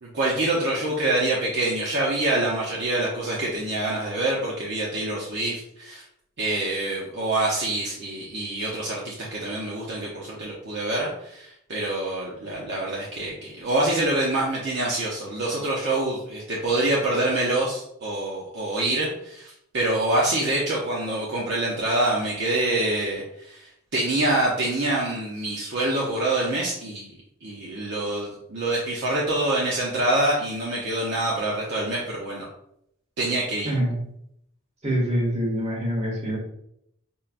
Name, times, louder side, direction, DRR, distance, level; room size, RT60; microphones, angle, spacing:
voice 1, 0.0-6.0 6.4-27.1 27.4-32.5 33.2-33.7, right 1 dB, 50° right, -4 dB, 0.6 m, -26 dB
voice 2, 34.8-36.4, equal, 30° right, -4 dB, 1.2 m, -25 dB
5.3 x 2.2 x 2.4 m, 0.75 s
head